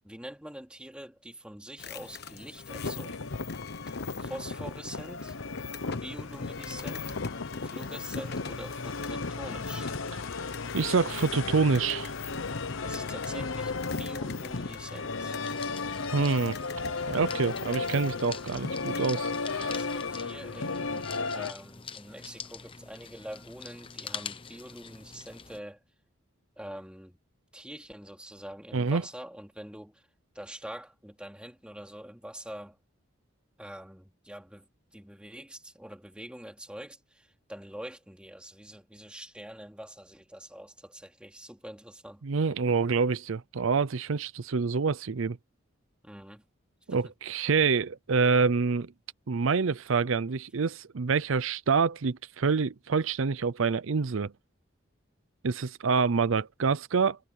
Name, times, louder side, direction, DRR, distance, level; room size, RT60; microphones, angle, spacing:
voice 1, 0.0-3.4 3.9-5.4 6.0-7.2 7.6-9.9 12.8-13.7 14.0-15.4 19.7-25.8 26.6-27.2 27.5-30.0 30.3-32.8 33.6-34.7 34.9-42.2 46.0-46.4 46.9-47.0, right 1 dB, 5° right, 2.7 m, -45 dB
sound 1, 1.8-20.2, left 6 dB, 50° left, 1.3 m, -46 dB
sound 2, 2.7-21.5, left 4 dB, 70° left, 0.9 m, -35 dB
voice 2, 10.7-12.1 16.1-16.6 17.1-19.8 28.7-29.0 42.2-45.4 46.9-48.9 49.3-54.3 55.4-57.2, right 5 dB, 75° right, 0.6 m, -27 dB
sound 3, 15.4-25.6, left 6 dB, 25° left, 0.9 m, -45 dB
head